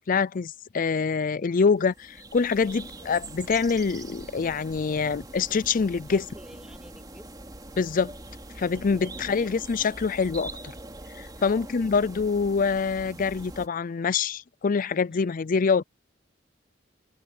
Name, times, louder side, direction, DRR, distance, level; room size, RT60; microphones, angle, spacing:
voice 1, 0.0-6.2 7.8-8.1 8.6-10.5 11.2-15.8, left 5 dB, 45° left, 0.4 m, -25 dB
sound 1, 1.8-13.7, right 2 dB, 20° right, 3.4 m, -43 dB
voice 2, 6.1-7.5 11.4-11.7 15.1-15.4, equal, 5° right, 2.8 m, -50 dB
open air
head